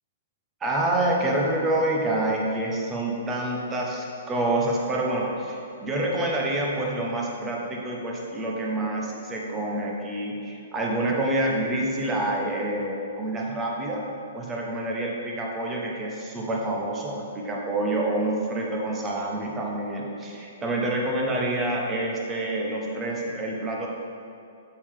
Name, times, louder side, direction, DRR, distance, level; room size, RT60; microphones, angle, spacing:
voice 1, 0.6-14.0 14.3-23.9, right 1 dB, 20° right, -2 dB, 1.0 m, -27 dB
6.7 x 5.1 x 3.6 m, 2.6 s
hypercardioid pair, 140°, 0 cm